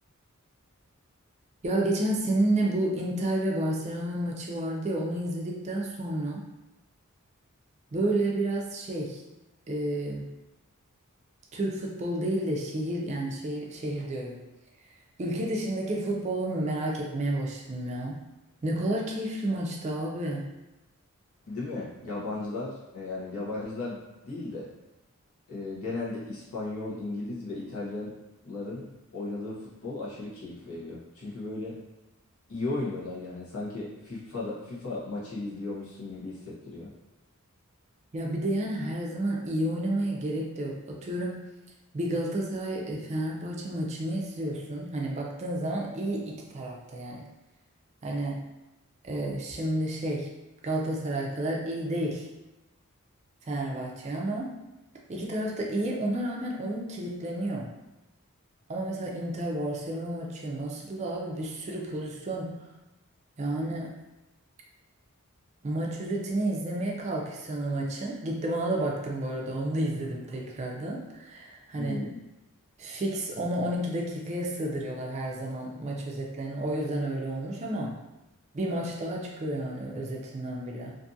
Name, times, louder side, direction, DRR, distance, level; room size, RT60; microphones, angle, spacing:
voice 1, 1.6-6.5 7.9-9.2 9.7-10.3 11.5-14.4 15.2-18.2 18.6-20.5 38.1-41.4 41.9-47.3 48.0-48.5 49.0-50.3 50.6-52.3 53.5-54.6 55.1-57.7 58.7-62.7 63.4-64.0 65.6-72.0 72.8-78.0 78.5-81.0, right 1 dB, 30° right, -2 dB, 0.4 m, -31 dB
voice 2, 21.5-24.7 25.5-28.1 28.4-31.8 32.5-36.9 71.7-72.2, left 2 dB, 80° left, -6 dB, 0.9 m, -36 dB
2.6 x 2.4 x 2.6 m, 1.0 s
head